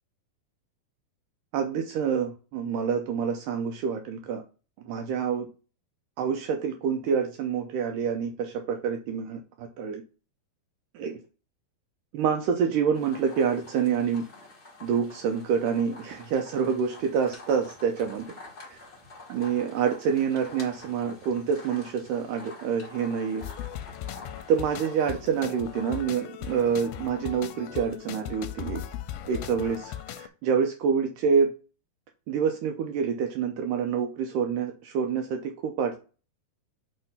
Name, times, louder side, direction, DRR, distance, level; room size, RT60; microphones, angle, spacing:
voice 1, 1.5-4.4 4.9-5.5 6.2-10.0 11.0-11.2 12.1-14.3 14.8-18.3 19.3-23.4 24.5-28.8 29.3-31.5 32.3-36.0, right 6 dB, 85° right, 5 dB, 1.9 m, -27 dB
sound 1, 12.9-26.0, left 2 dB, 45° left, 0.8 m, -48 dB
sound 2, 23.4-30.3, left 11 dB, 85° left, 2.3 m, -38 dB
6.1 x 3.2 x 5.4 m, 0.35 s
omnidirectional pair, 4.3 m